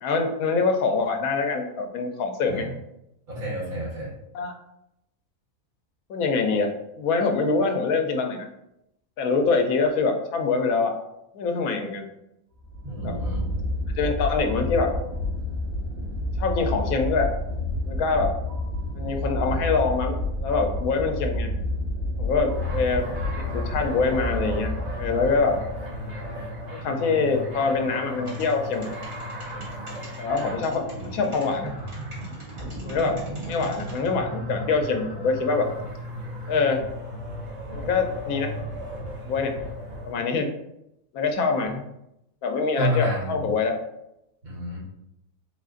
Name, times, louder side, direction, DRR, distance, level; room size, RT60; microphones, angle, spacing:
voice 1, 0.0-2.7 4.3-4.6 6.1-6.7 7.0-8.5 9.2-10.9 11.3-12.1 13.0-13.2 14.0-14.9 16.4-17.3 17.9-18.3 18.9-21.5 22.2-23.1 23.4-25.6 26.7-28.9 30.2-31.7 32.8-35.7 36.5-36.8 37.7-38.5 39.3-39.6 40.0-40.5 41.1-41.9 42.4-43.7, left 4 dB, 85° left, 4 dB, 1.1 m, -24 dB
voice 2, 3.3-4.1 12.8-13.5 30.9-31.1 42.8-43.5 44.4-44.8, equal, 80° right, -6 dB, 2.0 m, -29 dB
sound 1, 12.6-26.8, left 1 dB, 60° right, 1.7 m, -30 dB
sound 2, 22.5-40.1, equal, 45° right, 1.4 m, -36 dB
sound 3, 28.2-34.1, right 1 dB, 25° right, 1.2 m, -46 dB
3.8 x 2.4 x 3.7 m, 0.84 s
omnidirectional pair, 1.5 m